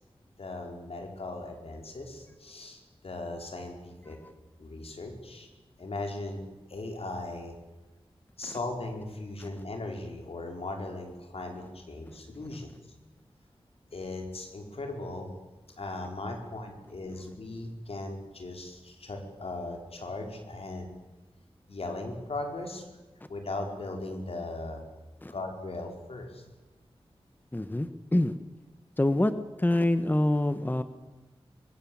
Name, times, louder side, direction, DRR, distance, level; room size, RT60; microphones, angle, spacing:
voice 1, 0.4-4.2 4.6-5.5 5.8-6.4 6.7-7.5 8.4-12.7 13.9-15.3 15.8-20.9 21.7-22.8 23.3-24.8 25.3-26.4, left 2 dB, 80° left, 3 dB, 5.0 m, -38 dB
voice 2, 27.5-28.3 29.0-29.3 29.6-30.8, left 1 dB, 20° left, 11 dB, 1.2 m, -25 dB
24.0 x 22.5 x 8.8 m, 1.1 s
wide cardioid pair, 90°, 10 cm